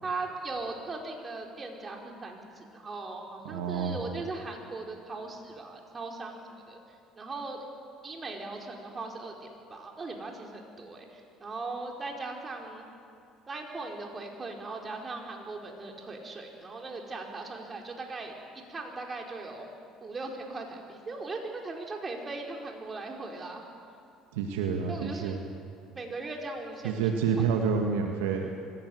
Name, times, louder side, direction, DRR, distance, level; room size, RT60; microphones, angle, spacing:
voice 1, 0.0-6.8 7.2-7.6 8.0-12.8 13.5-19.7 20.0-23.6 24.9-25.4 26.0-27.1, right 3 dB, 30° right, 1 dB, 4.6 m, -39 dB
voice 2, 3.4-4.0 24.3-25.4 26.8-28.5, right 6 dB, 80° right, 3 dB, 1.8 m, -28 dB
24.5 x 16.0 x 8.0 m, 2.5 s
hypercardioid pair, 70°, 0 cm